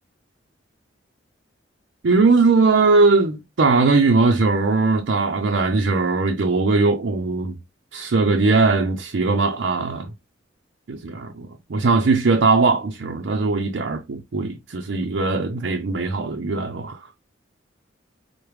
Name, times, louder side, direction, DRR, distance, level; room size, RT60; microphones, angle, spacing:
voice 1, 2.0-7.6 7.9-10.1 10.9-17.0, right 3 dB, 65° right, 0.5 m, -19 dB
4.6 x 2.1 x 3.2 m
head